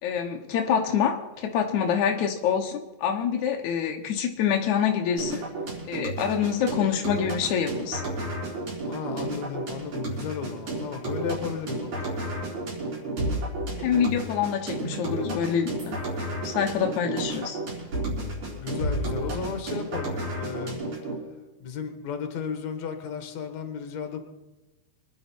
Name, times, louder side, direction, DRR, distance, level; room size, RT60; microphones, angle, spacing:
voice 1, 0.0-5.4 5.9-8.0 13.8-16.0 16.4-17.6, left 8 dB, 75° left, 3 dB, 1.7 m, -26 dB
sound 1, 5.2-21.2, right 1 dB, 45° right, 5.4 m, -32 dB
voice 2, 8.9-12.1 18.6-20.8 21.6-24.2, left 6 dB, 55° left, 6 dB, 2.4 m, -34 dB
25.0 x 10.5 x 4.5 m, 1.0 s
omnidirectional pair, 4.7 m